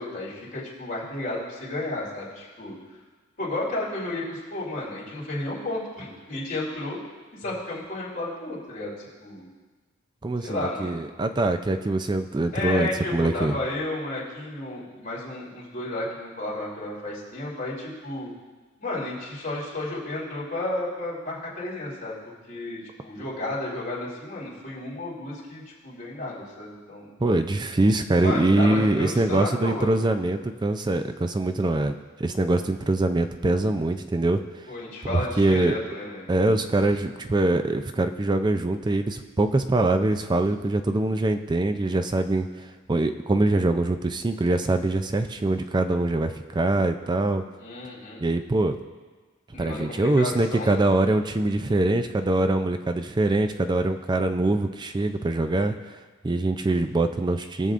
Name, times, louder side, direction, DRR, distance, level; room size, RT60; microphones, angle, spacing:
voice 1, 0.0-2.7 3.4-7.0 7.4-9.5 10.4-10.9 12.5-18.3 18.8-22.1 22.5-27.1 28.2-30.1 34.7-36.3 47.6-48.2 49.5-50.7, left 2 dB, 40° left, -6 dB, 3.1 m, -32 dB
voice 2, 10.2-13.6 27.2-31.9 32.2-34.4 35.1-35.8 36.3-47.4 48.2-48.7 49.6-55.7 56.2-57.7, right 2 dB, 20° right, 7 dB, 0.4 m, -23 dB
19.0 x 6.9 x 2.5 m, 1.4 s
head